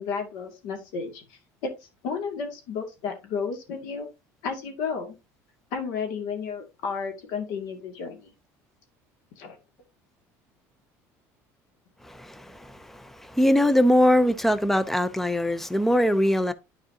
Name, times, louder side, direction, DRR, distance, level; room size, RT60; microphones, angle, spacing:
voice 1, 0.0-4.1 4.4-5.2 5.7-8.3 9.4-9.6, left 5 dB, 75° left, 2.3 m, -32 dB
voice 2, 12.0-16.5, left 1 dB, 5° left, 0.6 m, -22 dB
10.5 x 4.8 x 2.8 m
cardioid pair, 120°, 7 cm